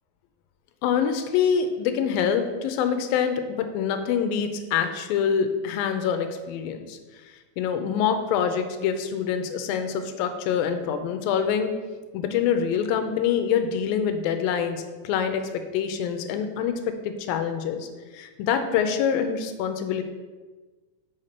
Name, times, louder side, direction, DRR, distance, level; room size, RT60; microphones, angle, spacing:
voice 1, 0.8-7.0 7.6-11.7 12.1-17.9 18.1-20.0, left 7 dB, 85° left, 8 dB, 2.5 m, -25 dB
6.6 x 5.7 x 5.8 m, 1.3 s
omnidirectional pair, 4.1 m